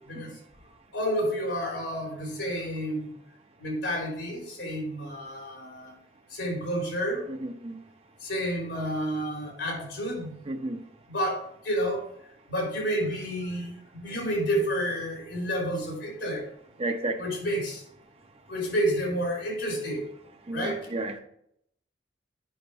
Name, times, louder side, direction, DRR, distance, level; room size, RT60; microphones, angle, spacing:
voice 1, 0.9-3.1 3.6-5.9 6.3-7.2 8.2-10.4 11.1-12.0 12.5-16.5 17.2-17.8 18.5-20.0 20.5-20.9, equal, 85° left, 3.5 m, -30 dB
voice 2, 7.4-7.8 10.5-10.8 16.8-17.2 20.5-21.2, right 2 dB, 35° right, 0.8 m, -32 dB
8.8 x 5.8 x 4.2 m
head